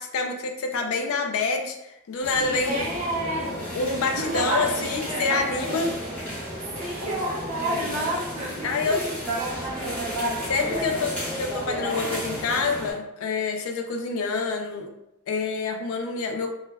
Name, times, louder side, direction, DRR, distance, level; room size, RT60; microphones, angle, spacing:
voice 1, 0.0-2.9 3.4-5.9 8.6-9.0 10.5-14.9 15.3-16.5, left 4 dB, 65° left, 4 dB, 0.4 m, -27 dB
sound 1, 2.2-12.9, equal, 5° left, 0.8 m, -32 dB
voice 2, 2.7-3.5 4.0-5.5 6.8-9.0 9.4-10.0, right 1 dB, 30° right, -4 dB, 0.5 m, -30 dB
2.2 x 2.1 x 3.2 m, 0.89 s
head